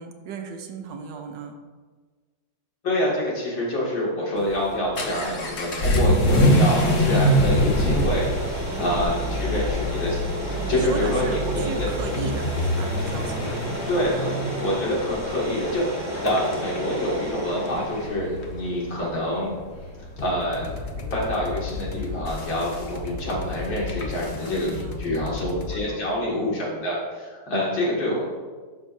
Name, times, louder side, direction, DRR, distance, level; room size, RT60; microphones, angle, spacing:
voice 1, 0.0-1.6 6.0-6.6 8.6-9.7 10.6-13.8 14.3-14.7 16.3-16.6 24.4-26.6, right 5 dB, 70° right, 5 dB, 1.4 m, -37 dB
voice 2, 2.8-11.7 13.9-14.3 14.6-15.8 16.2-19.5 20.2-20.7 21.1-28.2, left 1 dB, 75° left, -5 dB, 3.1 m, -27 dB
Vehicle / Accelerating revving vroom, 4.4-24.2, equal, 45° left, 1.0 m, -26 dB
sound 1, 6.2-18.1, equal, 10° right, 1.2 m, -32 dB
sound 2, 20.2-25.8, left 4 dB, 90° left, 0.4 m, -35 dB
12.0 x 6.3 x 2.7 m, 1.4 s
omnidirectional pair, 2.1 m